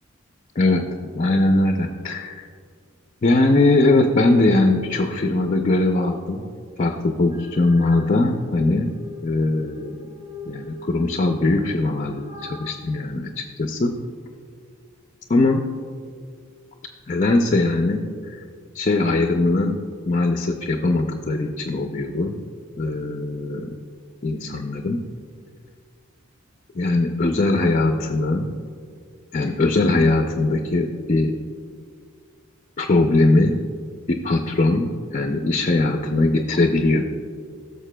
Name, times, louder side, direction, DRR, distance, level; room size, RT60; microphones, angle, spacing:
voice 1, 0.6-2.5 3.2-6.5 6.8-8.9 9.2-10.1 10.5-13.9 15.3-15.6 17.1-18.4 18.7-19.8 20.1-22.4 22.8-23.7 24.2-25.0 26.7-28.5 29.3-31.3 32.8-33.6 34.1-37.0, left 2 dB, 35° left, 4 dB, 0.4 m, -20 dB
sound 1, 7.3-8.0 8.6-12.6, left 2 dB, 40° right, 1.5 m, -41 dB
16.0 x 6.6 x 2.2 m, 2.2 s
head